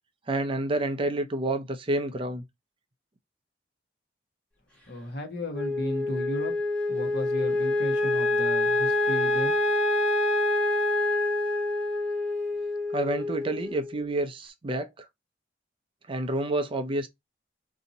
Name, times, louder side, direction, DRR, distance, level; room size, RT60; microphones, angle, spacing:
voice 1, 0.3-2.4 12.9-15.1 16.1-17.1, right 1 dB, 30° right, 0.5 m, -29 dB
voice 2, 4.9-6.5 6.9-9.5, left 1 dB, 60° left, 1.1 m, -34 dB
Wind instrument woodwind instrument, 5.5-14.0, left 2 dB, 5° left, 1.0 m, -26 dB
2.7 x 2.7 x 3.9 m
head